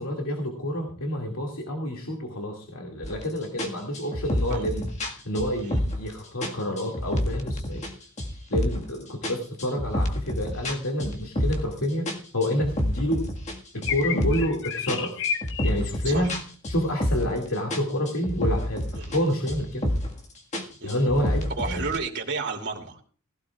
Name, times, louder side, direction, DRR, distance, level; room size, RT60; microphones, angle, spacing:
voice 1, 0.0-7.8 8.5-13.3 13.7-15.2 15.6-16.3 16.7-19.8 20.8-21.9, equal, 80° left, 1 dB, 2.2 m, -28 dB
sound 1, 3.0-3.2 3.6-6.1 6.4-7.9 8.2-8.9 9.2-11.7 12.1-14.5 14.9-17.4 17.7-19.2 19.5-20.2 20.5-22.0, left 1 dB, 35° left, 1.7 m, -28 dB
sound 2, 13.8-16.3, left 8 dB, 60° left, 1.0 m, -31 dB
voice 2, 21.6-23.0, right 4 dB, 55° right, 1 dB, 2.7 m, -32 dB
18.5 x 16.5 x 2.4 m, 0.41 s
head